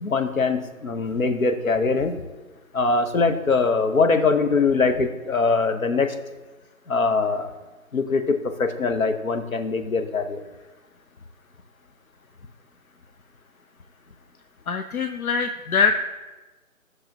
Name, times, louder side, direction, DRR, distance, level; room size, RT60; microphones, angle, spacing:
voice 1, 0.0-2.2 2.7-6.1 6.9-7.5 7.9-10.4, left 4 dB, 75° left, 8 dB, 1.1 m, -22 dB
voice 2, 14.7-16.0, left 5 dB, 90° left, 7 dB, 0.7 m, -23 dB
13.0 x 6.6 x 3.0 m, 1.2 s
figure-of-eight pair, 175°, 42 cm